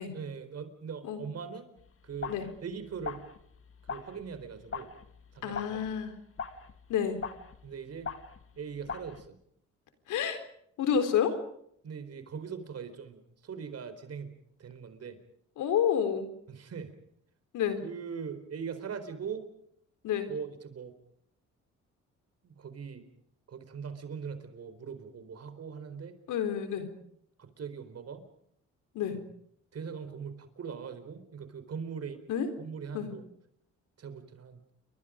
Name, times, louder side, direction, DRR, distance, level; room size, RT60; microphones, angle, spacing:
voice 1, 0.1-1.7 2.0-2.3 2.6-3.3 3.9-4.9 5.3-5.8 7.6-8.1 8.6-9.4 11.8-14.3 14.6-15.2 16.5-16.9 17.8-19.5 20.3-20.9 22.4-23.1 23.5-26.1 27.4-28.2 29.1-29.2 29.7-32.2 32.6-33.3 34.0-34.6, right 6 dB, 55° right, 10 dB, 4.5 m, -41 dB
sound 1, 1.8-9.3, left 5 dB, 45° left, 2.0 m, -42 dB
voice 2, 5.4-6.1 6.9-7.2 10.1-10.4 10.8-11.4 15.6-16.3 17.5-17.8 20.0-20.3 26.3-26.9 28.9-29.2 32.3-32.5 32.9-33.1, left 8 dB, 85° left, 8 dB, 4.1 m, -29 dB
29.5 x 23.5 x 5.2 m, 0.71 s
cardioid pair, 90°, 30 cm